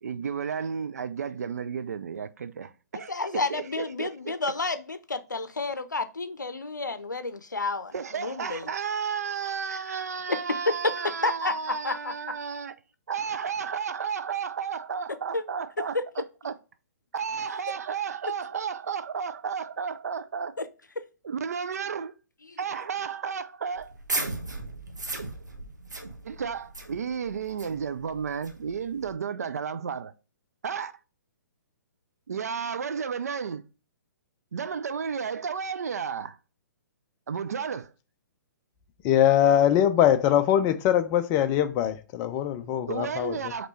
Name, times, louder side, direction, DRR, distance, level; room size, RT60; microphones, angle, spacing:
voice 1, 0.0-4.4 7.9-12.7 13.1-16.5 17.1-20.5 21.2-22.1 22.6-23.9 26.2-30.1 30.6-30.9 32.3-33.6 34.5-36.4 37.3-37.9 42.9-43.7, right 6 dB, 60° right, 0.5 m, -32 dB
voice 2, 2.9-8.7 9.7-12.1 15.3-15.4 15.9-16.0 20.6-20.7 21.0-21.1 22.5-22.6, left 3 dB, 80° left, 0.6 m, -31 dB
sound 1, 23.7-29.1, right 2 dB, 75° right, 1.0 m, -36 dB
voice 3, 39.0-43.4, left 10 dB, 25° left, 0.5 m, -22 dB
5.0 x 3.0 x 3.2 m
figure-of-eight pair, 125°, 10 cm